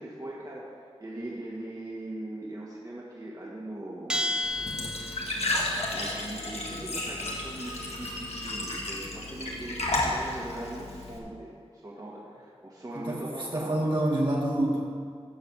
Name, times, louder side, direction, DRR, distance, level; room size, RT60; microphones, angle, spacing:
voice 1, 0.0-4.4 5.9-13.9, right 1 dB, 35° right, -5 dB, 1.9 m, -40 dB
Bell, 4.1-5.7, left 1 dB, 10° right, 0.4 m, -32 dB
Glass / Trickle dribble / Fill (with liquid), 4.4-11.2, left 2 dB, 80° left, 1.8 m, -32 dB
voice 2, 13.5-14.8, right 1 dB, 50° right, -4 dB, 2.2 m, -27 dB
13.0 x 4.8 x 7.4 m, 2.3 s
wide cardioid pair, 50°, 11 cm